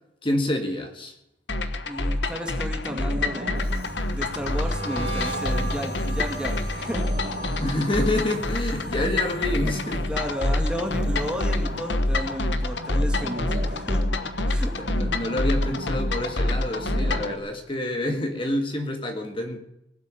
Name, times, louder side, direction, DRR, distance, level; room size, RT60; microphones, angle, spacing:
voice 1, 0.2-1.1 7.6-10.1 14.8-19.6, left 1 dB, 30° left, 4 dB, 1.9 m, -28 dB
sound 1, 1.5-17.4, left 2 dB, 90° left, 1.4 m, -27 dB
voice 2, 1.8-3.7 4.1-7.0 10.1-14.0 14.5-14.7, equal, 5° right, 3 dB, 2.1 m, -33 dB
sound 2, 2.8-17.3, right 1 dB, 50° right, 2.2 m, -38 dB
sound 3, 3.6-12.8 13.0-13.5 13.8-15.3, right 2 dB, 60° left, 3.7 m, -38 dB
19.0 x 8.3 x 8.9 m, 0.85 s
head